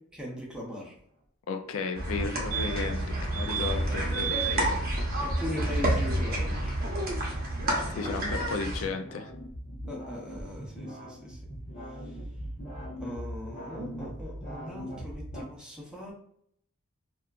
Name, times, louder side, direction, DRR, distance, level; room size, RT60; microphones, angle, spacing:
voice 1, 0.1-1.0 3.9-4.0 5.2-6.8 9.9-11.4 11.9-12.2 13.0-16.1, left 1 dB, 5° right, -3 dB, 0.6 m, -40 dB
voice 2, 1.5-4.8 7.9-9.3, left 4 dB, 70° left, 7 dB, 0.3 m, -34 dB
sound 1, 1.5-15.4, equal, 30° left, 1.0 m, -43 dB
sound 2, 1.9-8.9, right 1 dB, 45° right, 0.7 m, -29 dB
sound 3, 2.2-2.3 2.5-3.0 3.3-3.7 4.1-4.6 7.0-7.1 7.2-7.3, right 11 dB, 85° right, 0.4 m, -33 dB
2.8 x 2.2 x 2.3 m, 0.66 s
head